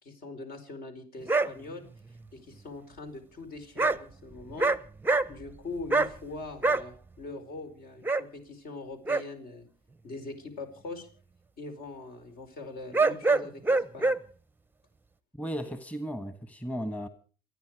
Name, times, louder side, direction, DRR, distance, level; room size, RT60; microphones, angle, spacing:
voice 1, 0.0-4.7 5.3-9.7 10.0-11.1 11.6-14.1, left 3 dB, 65° left, 4.6 m, -42 dB
sound 1, 1.3-1.5 3.8-4.0 4.4-4.8 5.0-5.5 5.9-6.1 6.6-6.8 8.0-8.2 9.1-9.2 12.9-14.2, right 3 dB, 10° right, 0.7 m, -24 dB
voice 2, 15.3-17.1, equal, 10° left, 1.4 m, -35 dB
28.0 x 9.7 x 4.8 m
cardioid pair, 110°, 17 cm